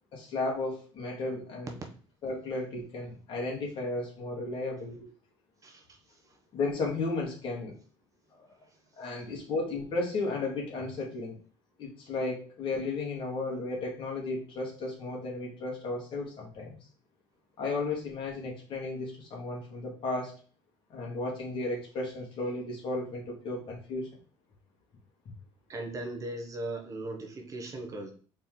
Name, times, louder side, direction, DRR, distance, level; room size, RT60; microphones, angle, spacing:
voice 1, 0.1-1.8 2.2-5.1 6.5-7.7 9.0-11.4 11.8-16.8 17.6-20.4 20.9-24.1, left 3 dB, 50° left, -1 dB, 2.0 m, -34 dB
voice 2, 5.6-6.0 25.7-28.1, right 2 dB, 30° right, 2 dB, 1.0 m, -38 dB
4.3 x 3.3 x 3.8 m, 0.40 s
cardioid pair, 120°, 10 cm